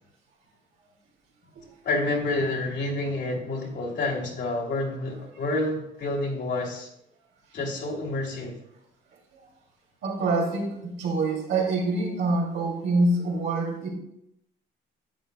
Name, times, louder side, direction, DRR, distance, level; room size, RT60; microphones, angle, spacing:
voice 1, 1.8-6.9 7.5-8.5, left 2 dB, 65° left, -1 dB, 3.0 m, -28 dB
voice 2, 10.0-13.9, right 2 dB, 80° right, -2 dB, 2.9 m, -25 dB
10.5 x 8.2 x 2.3 m, 0.77 s
cardioid pair, 90°, 20 cm